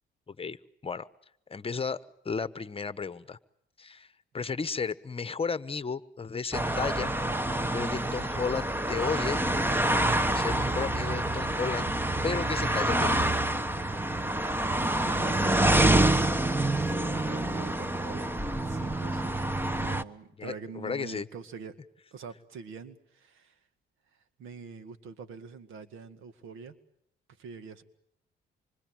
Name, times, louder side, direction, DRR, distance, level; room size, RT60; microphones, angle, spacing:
voice 1, 0.3-0.6 0.8-1.1 1.5-2.0 2.2-3.4 3.8-4.1 4.3-7.1 7.7-9.4 10.3-11.9 12.2-13.4 20.4-21.3, left 5 dB, 30° left, 14 dB, 1.1 m, -33 dB
sound 1, 6.5-20.0, right 1 dB, 10° right, 1.1 m, -27 dB
voice 2, 14.8-15.6 16.7-18.3 18.6-21.8 22.1-23.6 24.4-26.7 27.4-27.8, right 5 dB, 85° right, 11 dB, 2.0 m, -45 dB
27.0 x 24.5 x 7.7 m, 0.72 s
cardioid pair, 90°, 20 cm